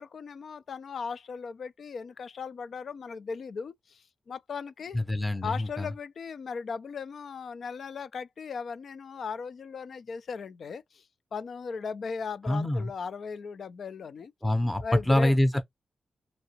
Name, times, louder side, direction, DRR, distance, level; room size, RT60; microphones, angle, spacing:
voice 1, 0.0-5.0 5.4-11.0 11.3-14.3 14.8-15.4, left 5 dB, 65° left, 0.4 m, -37 dB
voice 2, 4.9-5.9 12.5-12.8 14.4-15.6, left 1 dB, 10° left, 0.6 m, -25 dB
2.9 x 2.7 x 2.8 m
cardioid pair, 85°, 0 cm